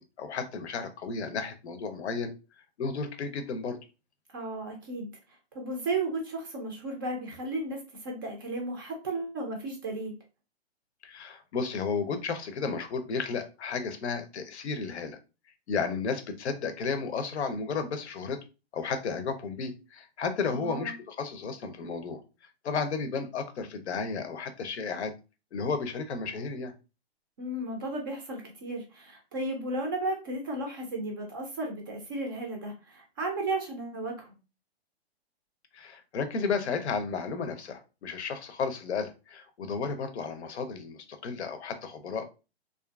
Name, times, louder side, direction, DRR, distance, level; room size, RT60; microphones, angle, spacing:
voice 1, 0.2-2.3 2.8-3.8 11.0-15.2 15.7-18.4 18.7-22.2 22.6-25.1 25.5-26.7 35.7-42.3, left 5 dB, 85° left, 9 dB, 0.6 m, -33 dB
voice 2, 4.3-5.1 5.5-10.2 20.5-21.0 27.4-34.4, right 2 dB, 20° right, 2 dB, 0.3 m, -34 dB
2.6 x 2.4 x 2.3 m, 0.31 s
hypercardioid pair, 145°, 32 cm